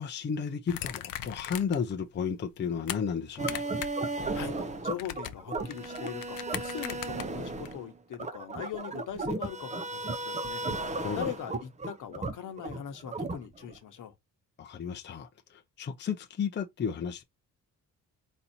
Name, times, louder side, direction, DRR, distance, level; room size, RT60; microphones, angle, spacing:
voice 1, 0.0-3.6 11.0-11.3 14.6-17.2, left 6 dB, 35° left, 0.6 m, -33 dB
sound 1, 0.7-1.9 2.3-3.0 3.4-4.1 4.3-7.7, left 13 dB, 80° left, 0.6 m, -39 dB
sound 2, 3.4-13.8, right 2 dB, 20° right, 0.7 m, -35 dB
voice 2, 4.8-14.1, left 9 dB, 65° left, 1.0 m, -41 dB
4.2 x 2.7 x 4.3 m
cardioid pair, 125°, 34 cm